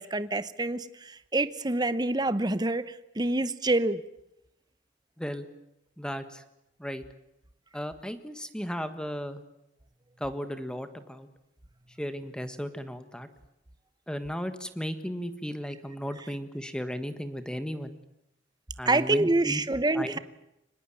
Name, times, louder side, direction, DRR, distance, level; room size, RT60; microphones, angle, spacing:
voice 1, 0.0-4.0 18.9-20.2, right 2 dB, 20° right, 13 dB, 0.9 m, -27 dB
voice 2, 6.0-6.4 6.8-7.0 7.7-9.4 10.2-11.3 12.0-13.3 14.1-18.0 18.8-19.6 19.9-20.2, equal, 5° left, 10 dB, 1.6 m, -35 dB
25.0 x 20.0 x 9.0 m, 0.85 s
head